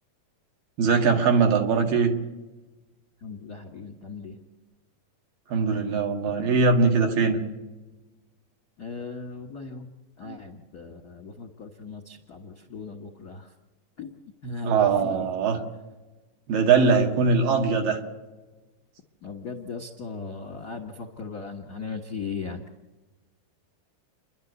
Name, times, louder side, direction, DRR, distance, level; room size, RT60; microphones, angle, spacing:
voice 1, 0.8-2.1 5.5-7.4 10.2-10.4 14.6-15.6 16.5-18.0, right 5 dB, 70° right, 3 dB, 3.6 m, -21 dB
voice 2, 3.2-4.4 8.8-9.9 10.2-13.4 14.0-14.1 14.4-15.3 19.2-22.6, left 4 dB, 55° left, 5 dB, 1.1 m, -37 dB
30.0 x 11.5 x 8.2 m, 1.2 s
omnidirectional pair, 4.1 m